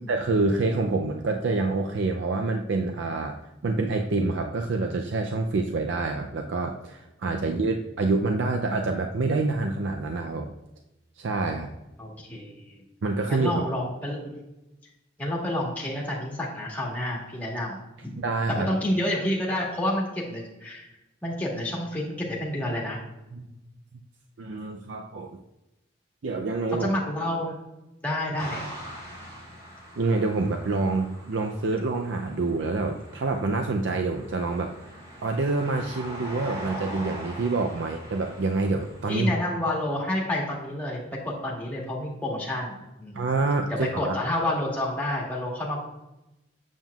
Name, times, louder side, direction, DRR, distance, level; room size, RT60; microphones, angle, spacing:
voice 1, 0.1-3.4 3.6-10.5 11.2-11.7 13.0-13.6 18.1-18.7 23.3-23.5 24.4-25.4 26.2-26.9 30.0-34.7 35.2-39.3 43.1-44.2, right 3 dB, 75° right, 4 dB, 0.5 m, -27 dB
voice 2, 12.0-12.8 13.3-14.4 15.2-18.1 18.5-20.9 21.2-23.0 23.4-23.5 26.7-27.6 28.0-28.6 39.1-43.2 43.8-45.8, left 1 dB, 10° left, -4 dB, 1.4 m, -29 dB
sound 1, 28.4-39.1, equal, 25° right, 2.3 m, -42 dB
7.3 x 7.2 x 2.3 m, 0.94 s
head